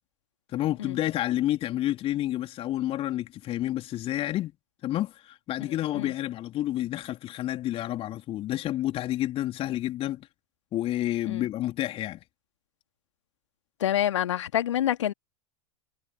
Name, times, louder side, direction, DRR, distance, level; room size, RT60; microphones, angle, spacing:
voice 1, 0.5-4.5 4.8-10.3 10.7-12.2, left 14 dB, 35° left, 3.7 m, -29 dB
voice 2, 13.8-15.1, left 11 dB, 65° left, 2.2 m, -27 dB
figure-of-eight pair, 85°, 17 cm